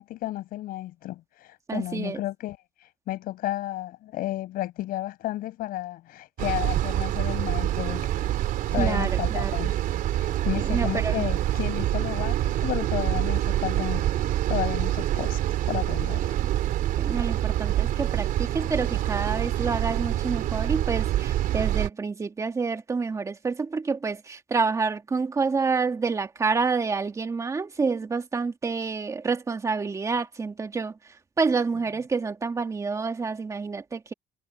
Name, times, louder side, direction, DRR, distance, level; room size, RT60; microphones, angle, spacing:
voice 1, 0.0-8.3 8.7-9.8 10.1-16.3, left 15 dB, 70° left, 6.9 m, -33 dB
voice 2, 1.7-2.2 8.8-9.7 10.6-11.3 17.0-34.1, right 4 dB, 20° right, 2.3 m, -28 dB
sound 1, 6.4-21.9, right 13 dB, 65° right, 3.3 m, -26 dB
cardioid pair, 150°, 15 cm